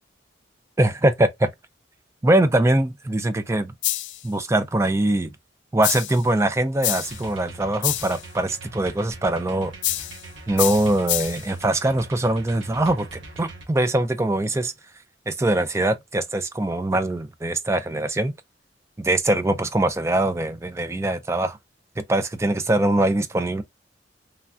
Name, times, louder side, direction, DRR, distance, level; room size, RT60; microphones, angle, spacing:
voice 1, 0.8-1.5 2.2-3.7 4.2-5.3 5.7-9.7 10.5-14.7 15.3-18.3 19.0-21.6 22.1-23.6, right 1 dB, 15° right, 0.4 m, -22 dB
sound 1, 3.8-4.3 5.8-6.2 6.8-7.2 7.8-8.2 9.8-10.2 10.6-11.5, left 15 dB, 70° left, 0.4 m, -27 dB
sound 2, 7.0-13.6, right 2 dB, 85° right, 1.1 m, -42 dB
3.2 x 2.3 x 2.4 m
head